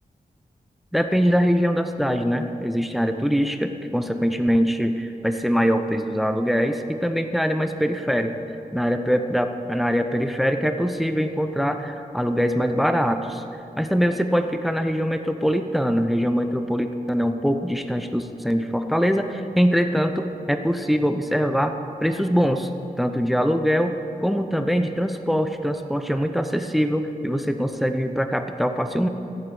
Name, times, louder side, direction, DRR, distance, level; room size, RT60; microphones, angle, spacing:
voice 1, 0.9-8.4 8.7-13.4 13.8-21.7 22.0-22.7 23.0-29.1, equal, ahead, 7 dB, 0.7 m, -23 dB
15.0 x 7.8 x 7.0 m, 2.7 s
wide cardioid pair, 110°, 15 cm